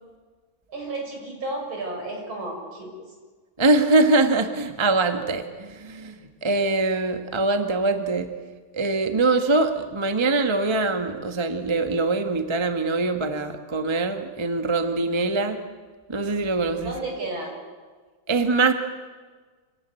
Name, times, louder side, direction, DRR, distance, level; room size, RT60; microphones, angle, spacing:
voice 1, 0.7-2.9 16.8-17.5, right 2 dB, 65° right, 1 dB, 6.7 m, -32 dB
voice 2, 3.6-6.1 6.4-8.3 8.7-15.6 16.1-16.9 18.3-18.7, right 3 dB, 15° right, 7 dB, 1.1 m, -23 dB
27.0 x 17.5 x 9.4 m, 1.4 s
omnidirectional pair, 2.4 m